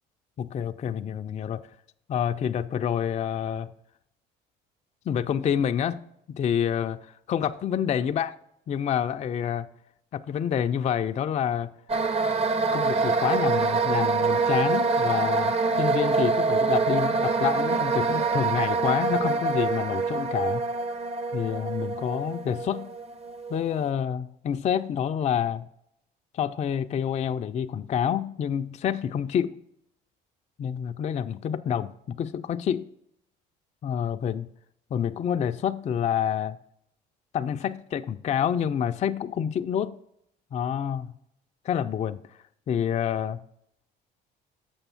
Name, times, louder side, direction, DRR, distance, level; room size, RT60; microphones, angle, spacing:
voice 1, 0.4-1.7 2.1-3.7 5.1-6.1 6.4-8.4 8.7-9.7 10.1-11.7 12.7-20.7 21.3-22.9 23.5-25.7 26.3-29.5 30.6-32.9 33.8-34.5 34.9-36.6 37.3-40.0 40.5-41.1 41.6-43.4, left 8 dB, 35° left, 0.4 m, -28 dB
sound 1, 11.9-23.8, right 4 dB, 30° right, 0.7 m, -25 dB
7.0 x 5.3 x 5.6 m
supercardioid pair, 75°, 21 cm